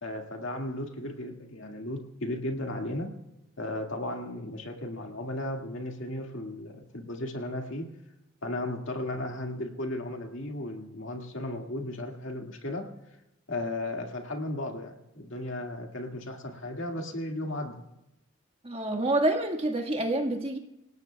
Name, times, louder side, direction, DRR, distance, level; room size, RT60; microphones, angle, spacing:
voice 1, 0.0-3.2 3.6-7.9 8.4-12.9 13.5-17.9, left 1 dB, 65° left, 2 dB, 2.0 m, -35 dB
voice 2, 18.6-20.6, right 1 dB, 25° right, 3 dB, 1.6 m, -27 dB
27.0 x 17.5 x 2.3 m, 0.91 s
head